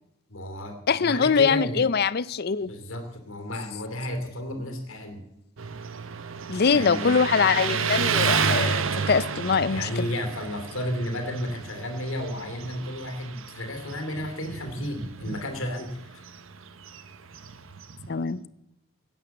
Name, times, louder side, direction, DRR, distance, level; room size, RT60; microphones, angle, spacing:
voice 1, 0.3-1.9 2.6-5.2 6.6-7.2 9.7-16.2, left 1 dB, 70° left, 2.7 m, -33 dB
voice 2, 0.9-2.7 6.5-10.1 18.1-18.4, left 5 dB, 45° left, 0.5 m, -23 dB
Motorcycle, 5.6-18.2, right 6 dB, 65° right, 0.9 m, -31 dB
16.5 x 9.0 x 7.1 m
head